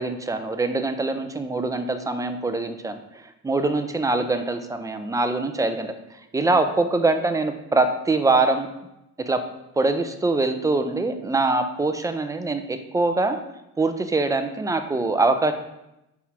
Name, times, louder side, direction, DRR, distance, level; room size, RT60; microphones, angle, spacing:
voice 1, 0.0-5.9 6.3-8.7 9.2-9.4 9.8-13.4 13.8-15.5, right 3 dB, 10° right, 7 dB, 0.3 m, -23 dB
5.6 x 4.8 x 5.7 m, 0.89 s
cardioid pair, 165°, 33 cm